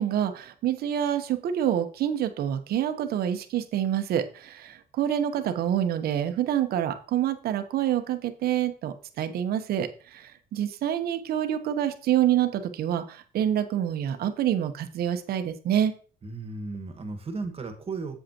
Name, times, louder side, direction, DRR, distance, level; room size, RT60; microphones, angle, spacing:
voice 1, 0.0-15.9, right 10 dB, 65° right, 8 dB, 1.0 m, -27 dB
voice 2, 16.2-18.2, right 3 dB, 35° right, 6 dB, 1.6 m, -35 dB
7.7 x 7.7 x 2.9 m, 0.40 s
cardioid pair, 110°, 17 cm